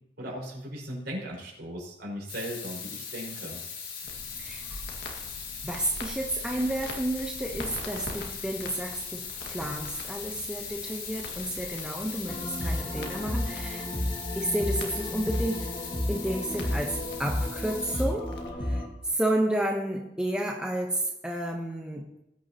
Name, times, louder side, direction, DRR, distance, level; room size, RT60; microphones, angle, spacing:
voice 1, 0.2-3.6, equal, 65° right, -3 dB, 5.3 m, -37 dB
sound 1, 2.3-18.0, left 6 dB, 90° left, 3.7 m, -39 dB
Crackle, 4.0-18.5, left 1 dB, 65° left, 1.9 m, -45 dB
voice 2, 4.4-4.8 5.6-13.9 14.3-15.7 16.1-22.1, right 1 dB, 5° right, 0 dB, 1.0 m, -31 dB
sound 2, 12.3-18.9, left 1 dB, 30° left, 1.8 m, -32 dB
19.5 x 9.4 x 2.9 m, 0.88 s
head